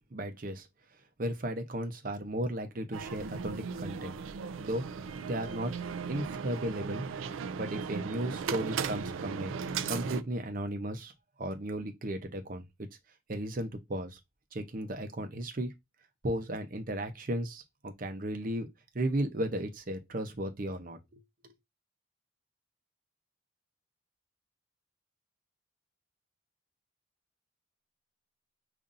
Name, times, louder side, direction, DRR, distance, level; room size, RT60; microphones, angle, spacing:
voice 1, 0.1-0.7 1.2-4.2 4.6-4.8 5.3-5.7 6.1-7.0 7.6-11.1 11.4-12.9 13.3-14.2 14.5-15.7 16.2-18.7 18.9-21.5, right 1 dB, 45° right, 0.7 m, -35 dB
sound 1, 2.9-10.2, right 6 dB, 85° right, 0.3 m, -37 dB
5.3 x 2.6 x 2.6 m
head